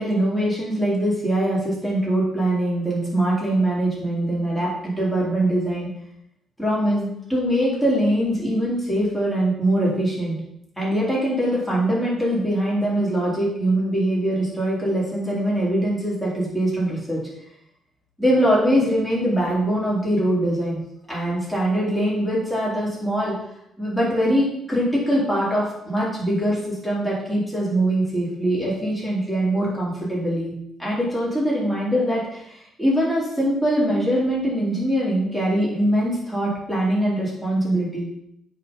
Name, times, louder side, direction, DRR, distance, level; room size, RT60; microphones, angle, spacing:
voice 1, 0.0-5.9 6.6-10.4 10.8-17.2 18.2-20.8 21.1-23.3 23.8-30.5 30.8-38.1, right 1 dB, 5° left, -6 dB, 3.6 m, -22 dB
8.9 x 4.2 x 5.3 m, 0.77 s
cardioid pair, 90°, 0 cm